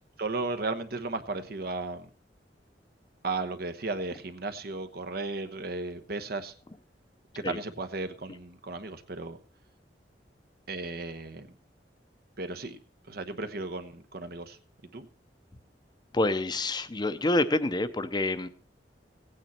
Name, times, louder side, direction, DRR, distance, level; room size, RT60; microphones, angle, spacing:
voice 1, 0.2-2.1 3.2-6.5 7.3-9.4 10.7-11.5 12.4-12.8 13.1-14.6 14.9-15.1, right 3 dB, 60° right, 8 dB, 1.1 m, -35 dB
voice 2, 16.1-18.5, left 2 dB, 25° left, 11 dB, 0.7 m, -27 dB
16.0 x 9.1 x 4.4 m, 0.42 s
head